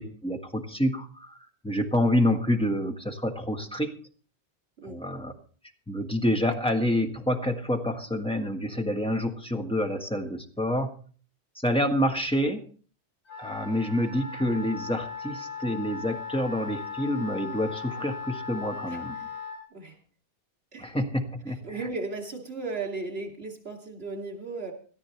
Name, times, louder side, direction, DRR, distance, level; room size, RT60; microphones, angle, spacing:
voice 1, 0.0-3.9 4.8-5.3 5.9-10.9 11.5-12.6 13.4-19.2 20.8-21.9, left 1 dB, 5° left, 4 dB, 1.5 m, -28 dB
Wind instrument woodwind instrument, 13.3-19.6, left 6 dB, 80° left, 4.4 m, -38 dB
voice 2, 21.6-24.7, right 3 dB, 60° right, 2 dB, 3.0 m, -35 dB
18.0 x 13.0 x 3.3 m, 0.43 s
omnidirectional pair, 1.2 m